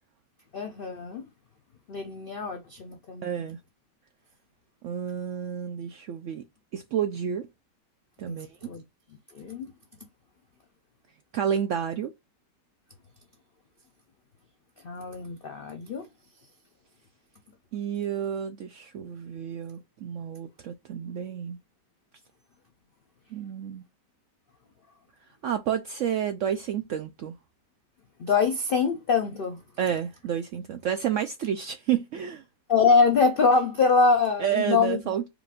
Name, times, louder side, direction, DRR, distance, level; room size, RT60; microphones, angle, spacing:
voice 1, 0.5-1.2 1.9-3.5 8.3-8.8 9.3-9.7 14.8-16.1 28.2-29.6 32.7-35.1, left 4 dB, 80° left, 0.5 m, -24 dB
voice 2, 3.2-3.6 4.8-6.5 6.7-7.5 8.2-8.7 11.3-12.1 17.7-21.6 23.3-23.8 25.4-27.4 29.8-32.4 34.4-35.3, right 9 dB, 75° right, 0.7 m, -30 dB
4.9 x 2.5 x 3.6 m
omnidirectional pair, 1.8 m